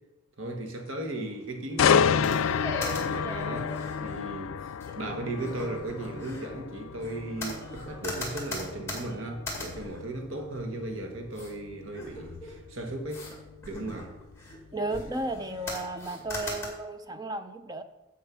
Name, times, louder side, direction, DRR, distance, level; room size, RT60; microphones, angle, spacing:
voice 1, 0.4-2.5 2.9-13.3 13.7-14.1, right 2 dB, 75° right, 1.4 m, -36 dB
sound 1, 1.8-15.6 16.0-16.3, left 7 dB, 80° left, 0.4 m, -31 dB
sound 2, 2.2-4.3 4.8-4.9 5.4-6.5 7.0-10.8 11.3-11.5 11.9-12.6 13.1-13.3 13.6-14.6 14.9-15.4 15.7-16.7, left 1 dB, 10° left, 2.1 m, -39 dB
voice 2, 14.7-17.8, right 2 dB, 20° right, 0.5 m, -34 dB
7.8 x 6.8 x 6.1 m
head